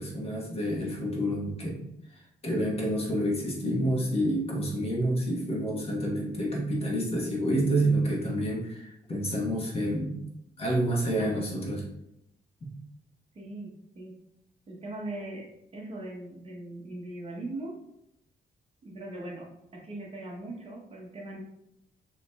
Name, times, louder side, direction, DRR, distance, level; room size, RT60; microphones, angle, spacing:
voice 1, 0.0-1.8 2.1-10.2 10.6-11.8 12.6-12.7, right 1 dB, 35° left, -3 dB, 1.2 m, -28 dB
voice 2, 13.3-14.1 14.7-15.5 15.7-17.8 18.8-21.4, right 2 dB, 35° right, -2 dB, 0.9 m, -40 dB
6.7 x 3.0 x 2.3 m, 0.82 s
wide cardioid pair, 155°, 17 cm